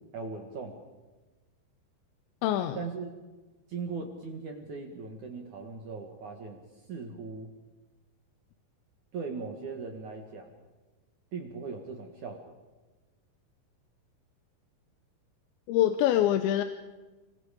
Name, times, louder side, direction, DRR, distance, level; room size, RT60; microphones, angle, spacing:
voice 1, 0.1-0.8 2.7-3.1 3.7-6.6 6.9-7.5 9.1-10.5 11.3-12.4, right 4 dB, 55° right, 4 dB, 2.5 m, -39 dB
voice 2, 2.4-2.8 15.7-16.6, left 12 dB, 80° left, 8 dB, 3.1 m, -24 dB
26.0 x 24.0 x 5.2 m, 1.2 s
omnidirectional pair, 5.3 m